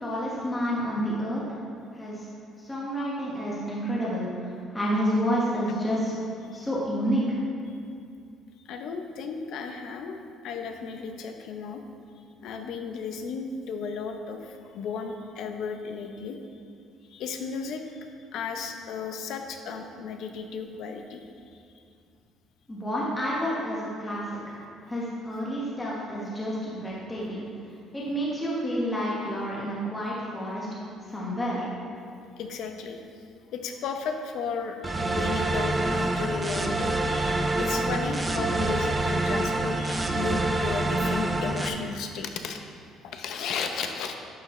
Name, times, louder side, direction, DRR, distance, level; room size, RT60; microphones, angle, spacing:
voice 1, 0.0-1.4 1.9-2.3 2.6-6.2 6.5-7.4 22.7-27.5 27.9-30.8 31.1-31.7, equal, 10° left, -6 dB, 1.3 m, -29 dB
voice 2, 8.6-11.8 12.4-16.4 17.1-21.6 32.4-33.0 33.5-42.6 43.0-44.1, left 5 dB, 60° left, 5 dB, 0.7 m, -34 dB
sound 1, 34.8-41.7, right 2 dB, 15° right, 0.4 m, -26 dB
10.5 x 6.7 x 3.2 m, 2.3 s
cardioid pair, 165°, 0 cm